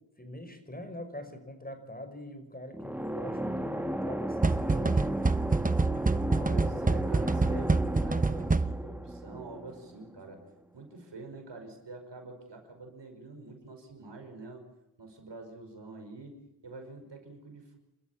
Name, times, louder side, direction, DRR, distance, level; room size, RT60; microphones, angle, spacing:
voice 1, 0.2-5.3 6.2-6.7, left 1 dB, 20° left, 8 dB, 5.5 m, -43 dB
sound 1, 2.7-10.4, right 1 dB, 5° right, 1.7 m, -35 dB
sound 2, 4.4-9.0, right 3 dB, 20° right, 0.8 m, -27 dB
voice 2, 6.5-10.4 10.7-14.6 15.0-17.8, right 3 dB, 75° right, 4 dB, 5.6 m, -46 dB
29.0 x 13.5 x 8.6 m, 0.97 s
cardioid pair, 60°, 43 cm